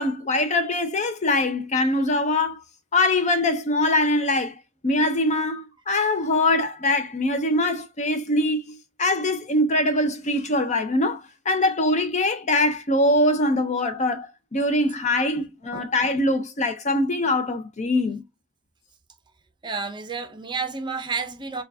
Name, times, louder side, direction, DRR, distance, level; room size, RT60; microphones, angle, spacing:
voice 1, 0.0-2.6 2.9-4.6 4.8-18.2, left 1 dB, 35° left, 0.6 m, -23 dB
voice 2, 19.6-21.6, right 4 dB, 25° right, 0.6 m, -31 dB
4.4 x 2.3 x 2.7 m
head